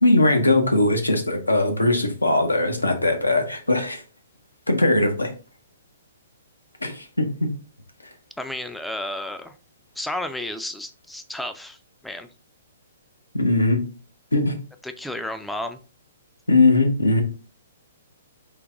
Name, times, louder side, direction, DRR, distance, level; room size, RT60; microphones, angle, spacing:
voice 1, 0.0-4.0 4.7-5.3 6.8-7.5 13.3-13.8 14.3-14.6 16.5-17.2, left 2 dB, 85° left, 0.8 m, -20 dB
voice 2, 8.4-9.5 10.0-11.8 12.0-12.3 14.8-15.8, left 1 dB, 5° left, 0.4 m, -32 dB
3.8 x 2.8 x 3.5 m
figure-of-eight pair, 120°, 0 cm